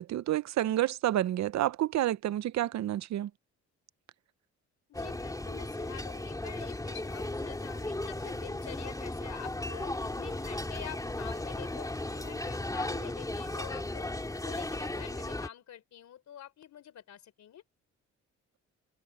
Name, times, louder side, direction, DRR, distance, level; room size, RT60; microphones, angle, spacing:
voice 1, 0.0-3.3, right 13 dB, 65° right, 0.7 m, -29 dB
voice 2, 4.9-14.1 14.4-17.6, left 10 dB, 65° left, 3.5 m, -47 dB
sound 1, 4.9-15.5, left 2 dB, 10° left, 3.1 m, -36 dB
cardioid pair, 90°, 30 cm